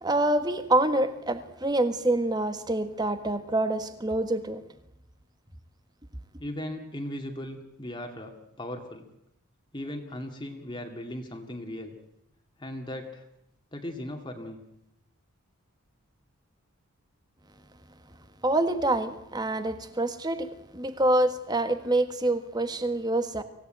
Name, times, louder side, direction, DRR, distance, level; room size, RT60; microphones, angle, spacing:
voice 1, 0.0-4.6 18.4-23.4, right 1 dB, 20° right, 10 dB, 1.4 m, -26 dB
voice 2, 6.4-9.0 9.7-11.9 12.6-13.3 13.7-14.6, left 1 dB, 20° left, 3 dB, 2.1 m, -37 dB
25.5 x 16.5 x 9.0 m, 0.81 s
head